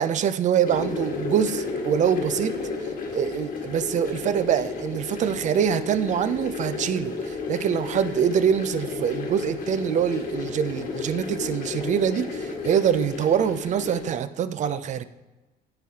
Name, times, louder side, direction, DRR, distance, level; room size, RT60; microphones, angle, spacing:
voice 1, 0.0-2.6 3.1-15.0, right 8 dB, 45° right, 13 dB, 0.4 m, -24 dB
sound 1, 0.6-14.1, left 4 dB, 55° left, 1.5 m, -32 dB
10.0 x 4.0 x 2.8 m, 1.1 s
cardioid pair, 110°, 17 cm